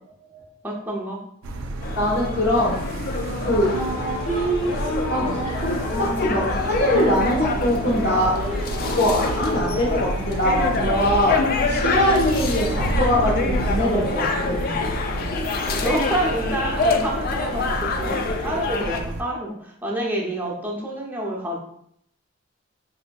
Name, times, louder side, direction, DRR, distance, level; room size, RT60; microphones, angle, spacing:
voice 1, 0.6-1.2 5.2-5.4 14.4-14.5 15.7-21.6, right 1 dB, 10° right, -3 dB, 0.6 m, -28 dB
sound 1, 1.4-19.2, right 2 dB, 80° right, 0.3 m, -30 dB
sound 2, 1.8-19.0, left 4 dB, 45° left, 0.3 m, -27 dB
voice 2, 1.9-2.8 3.4-3.8 5.1-5.3 5.6-8.4 8.8-11.4 11.7-14.9, left 1 dB, 70° left, -7 dB, 1.0 m, -22 dB
sound 3, 3.5-16.9, right 1 dB, 85° left, 1.1 m, -31 dB
4.2 x 2.5 x 2.2 m, 0.68 s
head